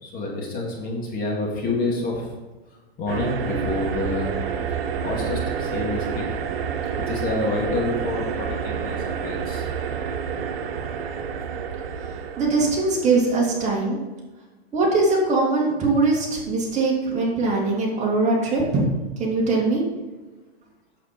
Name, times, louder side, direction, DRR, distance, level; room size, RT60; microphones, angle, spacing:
voice 1, 0.0-2.3 3.0-4.4 5.0-6.2 7.1-9.7, left 2 dB, 30° left, -1 dB, 2.2 m, -28 dB
sound 1, 3.1-13.4, right 7 dB, 65° right, 1.2 m, -29 dB
voice 2, 12.4-14.0 14.7-18.8 19.2-19.8, right 3 dB, 20° right, -2 dB, 2.2 m, -21 dB
8.6 x 7.5 x 4.5 m, 1.2 s
hypercardioid pair, 140°, 32 cm